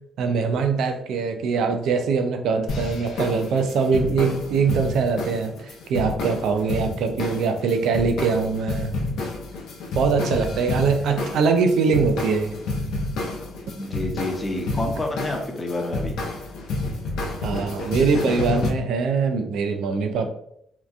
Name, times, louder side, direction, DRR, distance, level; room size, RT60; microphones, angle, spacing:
voice 1, 0.2-8.9 9.9-12.5 17.4-20.3, right 5 dB, 75° right, 6 dB, 0.3 m, -22 dB
sound 1, 2.7-18.7, left 2 dB, 80° left, 0.5 m, -30 dB
voice 2, 13.7-16.2, left 2 dB, 25° left, 2 dB, 0.6 m, -28 dB
2.8 x 2.2 x 2.4 m, 0.72 s
cardioid pair, 90°, 0 cm